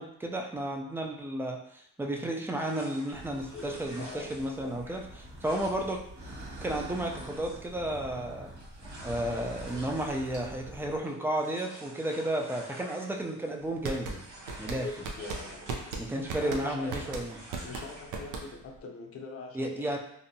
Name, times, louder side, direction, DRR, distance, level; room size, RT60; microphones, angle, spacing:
voice 1, 0.0-5.0 5.4-6.0 6.6-8.5 9.0-14.2 14.6-14.9 16.0-17.4 19.5-20.0, right 1 dB, 10° right, 1 dB, 0.3 m, -33 dB
sound 1, 2.6-13.7 13.9-18.2, right 1 dB, 70° right, 1.3 m, -50 dB
sound 2, 3.1-11.0, right 1 dB, 50° right, 1.2 m, -45 dB
voice 2, 3.5-4.3 4.6-4.8 14.7-15.7 16.4-17.1 17.6-19.9, left 4 dB, 50° left, 2 dB, 0.6 m, -43 dB
sound 3, 13.6-18.8, right 3 dB, 85° right, 0.5 m, -37 dB
2.6 x 2.1 x 2.6 m, 0.74 s
cardioid pair, 90°, 30 cm